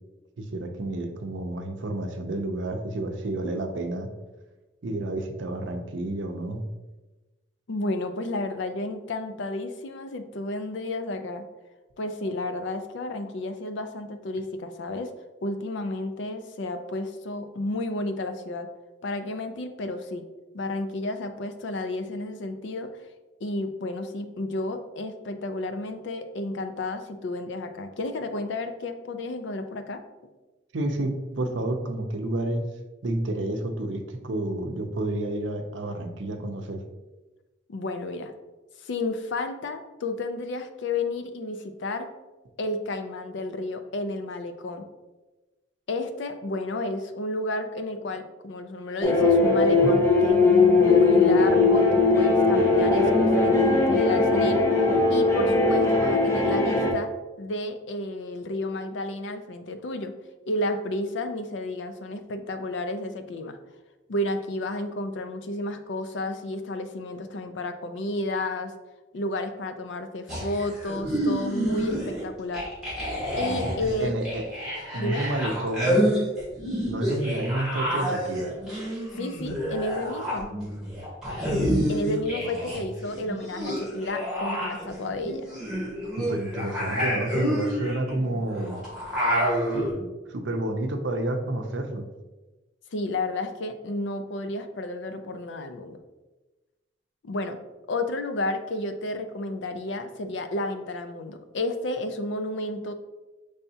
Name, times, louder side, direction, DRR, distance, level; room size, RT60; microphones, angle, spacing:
voice 1, 0.4-4.1 4.8-6.6 30.7-32.7 33.0-36.8 49.8-49.9 73.6-74.5 74.9-76.1 76.9-78.5 82.4-82.9 86.2-88.8 89.1-89.3 89.7-92.1, right 1 dB, 70° right, 5 dB, 0.6 m, -30 dB
voice 2, 7.7-11.4 12.0-15.1 15.4-18.7 19.0-20.2 20.5-22.9 23.4-30.0 37.7-38.3 38.8-42.1 42.6-44.9 45.9-54.6 55.1-57.1 57.4-60.1 60.5-63.6 64.1-68.7 69.1-72.7 73.4-74.1 75.0-75.2 79.2-80.5 81.9-85.5 92.9-96.0 97.2-97.6 97.9-102.9, left 2 dB, 70° left, 8 dB, 0.4 m, -31 dB
sound 1, 49.0-56.9, left 3 dB, 15° left, 0.6 m, -19 dB
sound 2, 70.3-72.2 72.5-82.8 83.0-89.9, equal, 5° right, 1.5 m, -28 dB
5.4 x 3.4 x 2.7 m, 1.1 s
head